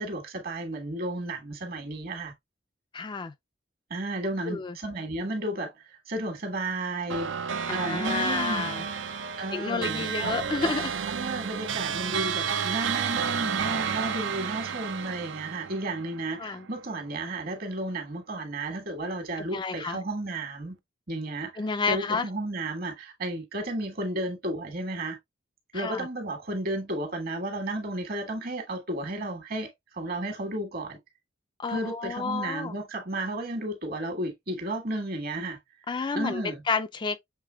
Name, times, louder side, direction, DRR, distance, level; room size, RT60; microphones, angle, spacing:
voice 1, 0.0-2.3 3.9-7.3 7.7-8.8 9.4-10.4 11.1-20.8 21.1-21.6 21.9-25.2 25.7-31.0 31.7-35.6 36.1-36.6, right 1 dB, 50° right, 1.5 m, -33 dB
voice 2, 2.9-3.3 4.5-4.8 7.7-8.8 9.5-10.9 16.4-16.7 19.5-20.0 21.6-22.3 25.7-26.1 31.6-32.7 35.9-37.2, left 4 dB, 25° left, 0.4 m, -30 dB
sound 1, 7.1-16.7, right 7 dB, 75° right, 0.6 m, -31 dB
6.7 x 3.4 x 2.3 m
head